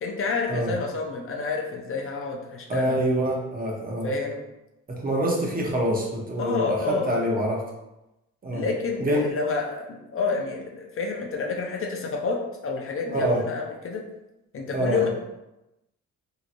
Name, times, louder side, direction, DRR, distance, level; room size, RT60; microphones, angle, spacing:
voice 1, 0.0-3.0 4.0-4.4 6.4-7.1 8.5-14.0 14.5-15.1, left 4 dB, 45° left, 0 dB, 0.6 m, -29 dB
voice 2, 2.7-4.1 4.9-7.6 8.4-8.6 9.0-9.3 13.1-13.4 14.7-15.1, right 1 dB, 30° right, -2 dB, 0.8 m, -25 dB
2.9 x 2.8 x 2.5 m, 0.94 s
cardioid pair, 90°, 30 cm